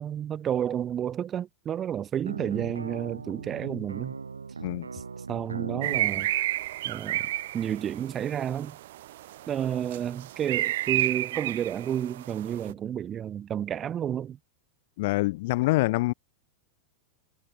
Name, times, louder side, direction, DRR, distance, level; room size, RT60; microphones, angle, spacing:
voice 1, 0.0-4.2 4.9-5.0 5.3-6.3 6.8-8.8 9.5-14.4, right 9 dB, 25° right, 5.8 m, -31 dB
sound 1, 2.2-6.1, right 4 dB, 75° right, 7.6 m, -38 dB
sound 2, 5.8-12.7, right 15 dB, 55° right, 1.1 m, -31 dB
voice 2, 15.0-16.1, left 20 dB, 50° left, 1.4 m, -25 dB
figure-of-eight pair, 90°, 0 cm